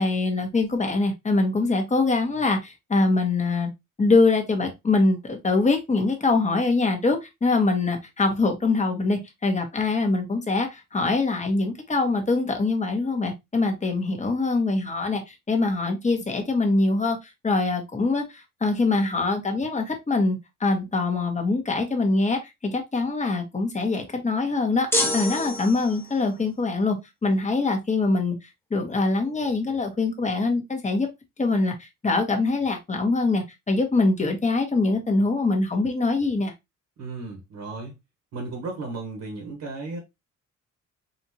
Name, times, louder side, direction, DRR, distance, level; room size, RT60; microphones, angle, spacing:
voice 1, 0.0-3.7 4.0-17.2 17.4-18.2 18.6-24.9 25.1-27.0 27.2-28.3 28.7-31.1 31.4-36.5, left 3 dB, 25° left, 1.4 m, -23 dB
sound 1, 24.9-26.3, left 1 dB, 10° left, 1.1 m, -27 dB
voice 2, 37.0-38.0 38.3-40.0, right 3 dB, 70° right, 1.5 m, -34 dB
4.2 x 2.8 x 2.9 m
cardioid pair, 90°, 30 cm